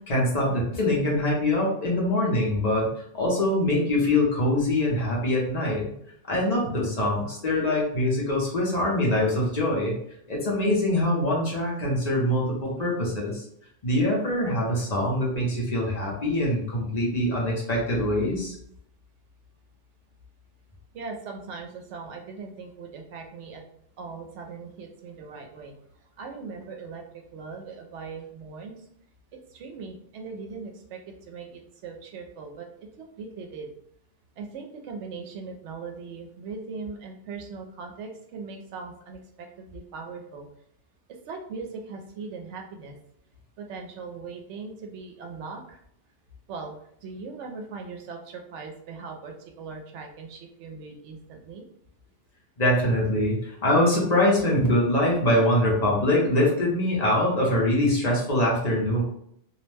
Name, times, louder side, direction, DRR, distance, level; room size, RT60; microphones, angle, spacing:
voice 1, 0.1-2.9 3.1-5.9 6.3-9.9 10.3-13.4 13.8-18.6 52.6-59.0, left 1 dB, 40° left, -3 dB, 0.7 m, -23 dB
voice 2, 20.9-23.6 24.0-25.8 26.2-28.9 29.5-32.7 33.0-33.7 34.4-40.5 41.3-43.0 43.6-45.8 46.5-46.8 47.0-51.6, right 4 dB, 75° right, 3 dB, 0.9 m, -39 dB
2.5 x 2.1 x 3.2 m, 0.69 s
omnidirectional pair, 1.2 m